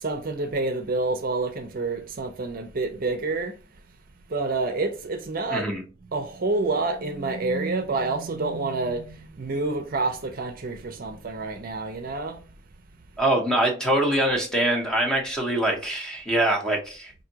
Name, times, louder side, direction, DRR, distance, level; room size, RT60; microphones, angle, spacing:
voice 1, 0.0-3.5 4.3-5.7 6.1-12.4, right 3 dB, 50° right, 0.5 m, -28 dB
voice 2, 5.5-5.8 13.2-17.1, right 1 dB, 5° left, 0.7 m, -24 dB
4.8 x 2.6 x 2.8 m
head